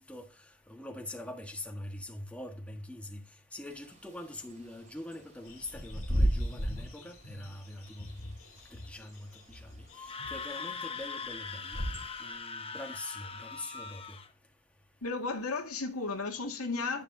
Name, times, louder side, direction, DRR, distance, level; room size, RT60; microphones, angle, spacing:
voice 1, 0.7-3.2 3.5-8.0 8.9-9.1 10.3-11.8 12.2-14.0, left 1 dB, 5° left, 1.5 m, -43 dB
Bird / Wind, 3.7-12.4, equal, 35° right, 3.5 m, -35 dB
sound 1, 5.4-11.1, left 2 dB, 70° left, 2.5 m, -51 dB
Screaming, 9.9-14.3, left 5 dB, 25° left, 1.0 m, -41 dB
voice 2, 15.0-17.0, left 3 dB, 85° left, 2.1 m, -34 dB
11.0 x 10.0 x 2.8 m
head